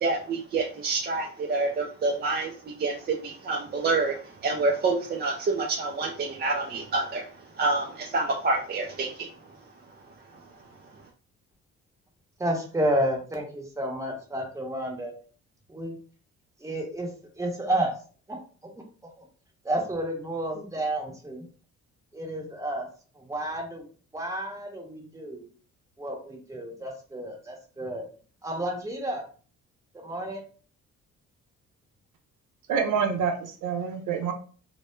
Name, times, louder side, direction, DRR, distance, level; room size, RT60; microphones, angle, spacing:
voice 1, 0.0-9.3 10.3-10.4, right 3 dB, 35° right, 0 dB, 0.4 m, -28 dB
voice 2, 12.4-15.1 15.7-16.0 16.6-17.1 17.4-17.9 18.3-18.4 19.0-19.3 19.6-21.4 22.1-22.9 23.1-23.9 24.1-25.5 26.0-28.0 28.4-29.2 29.9-30.4, right 1 dB, 10° right, 0 dB, 0.8 m, -31 dB
voice 3, 32.7-34.3, right 6 dB, 85° right, 5 dB, 0.5 m, -27 dB
2.1 x 2.0 x 3.0 m, 0.41 s
cardioid pair, 90°, 30 cm